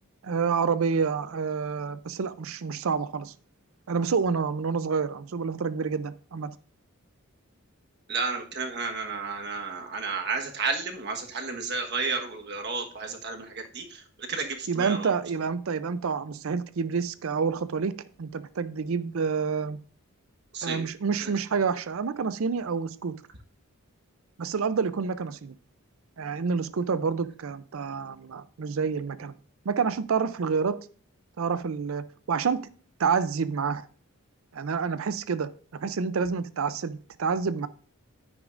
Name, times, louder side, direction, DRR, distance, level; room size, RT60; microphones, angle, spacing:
voice 1, 0.2-3.3 3.9-6.5 14.7-17.9 18.2-19.8 20.6-23.1 24.4-25.5 26.2-29.3 29.7-30.8 31.4-32.6 33.0-33.9 34.5-37.7, right 5 dB, 70° right, 0.5 m, -28 dB
voice 2, 8.1-13.8 14.3-15.1 20.5-20.9, right 4 dB, 50° right, 1.3 m, -32 dB
10.0 x 9.5 x 2.5 m
head